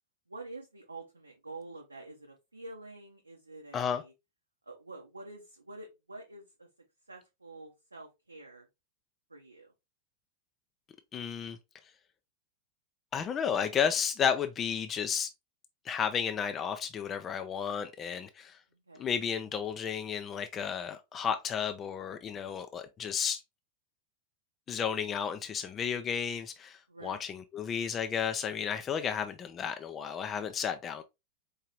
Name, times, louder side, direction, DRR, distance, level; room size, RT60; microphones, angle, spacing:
voice 1, 0.3-4.1 4.7-6.7 7.1-8.7 9.3-9.7 18.7-19.0 26.9-27.2, right 2 dB, 80° right, 0.6 m, -47 dB
voice 2, 11.1-11.6 13.1-15.3 15.8-18.6 19.0-23.4 24.7-31.0, left 7 dB, 25° left, 0.4 m, -32 dB
4.7 x 2.8 x 2.9 m
figure-of-eight pair, 90°, 0 cm